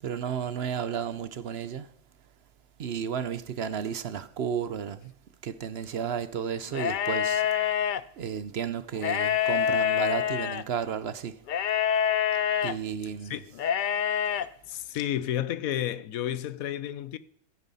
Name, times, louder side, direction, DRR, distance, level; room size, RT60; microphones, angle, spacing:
voice 1, 0.0-1.9 2.8-5.1 5.4-7.5 8.2-11.4 12.6-13.4, right 8 dB, 55° right, 0.8 m, -33 dB
sound 1, 6.7-8.0 8.9-10.6 11.5-12.7 13.5-14.4, left 9 dB, 60° left, 0.5 m, -26 dB
voice 2, 14.7-17.2, left 11 dB, 90° left, 1.1 m, -31 dB
15.0 x 9.2 x 4.1 m
omnidirectional pair, 1.4 m